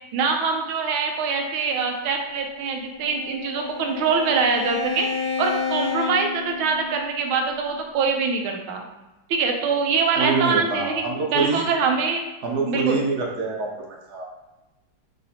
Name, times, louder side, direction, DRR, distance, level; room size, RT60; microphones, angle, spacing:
voice 1, 0.1-5.1 5.4-8.8 9.3-11.0 11.3-12.2 12.6-13.0, right 5 dB, 90° right, 3 dB, 1.5 m, -24 dB
Bowed string instrument, 2.6-7.1, left 6 dB, 60° left, 1.6 m, -30 dB
voice 2, 10.2-11.7 12.4-14.2, right 4 dB, 65° right, -1 dB, 1.2 m, -25 dB
5.8 x 3.1 x 2.8 m, 1.0 s
omnidirectional pair, 2.2 m